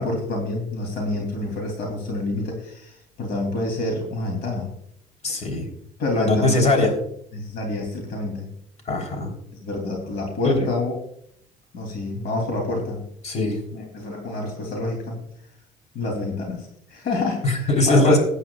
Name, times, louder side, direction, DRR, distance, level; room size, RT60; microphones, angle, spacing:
voice 1, 0.0-4.7 6.0-6.8 7.3-8.5 9.5-10.9 11.7-13.0 13.7-15.2 15.9-18.2, left 2 dB, 65° left, 1 dB, 3.1 m, -27 dB
voice 2, 5.2-5.7 6.2-6.9 8.9-9.3 10.4-10.7 13.2-13.6 17.4-18.2, left 2 dB, 40° left, 3 dB, 3.6 m, -20 dB
19.5 x 9.3 x 2.4 m, 0.70 s
cardioid pair, 110°, 17 cm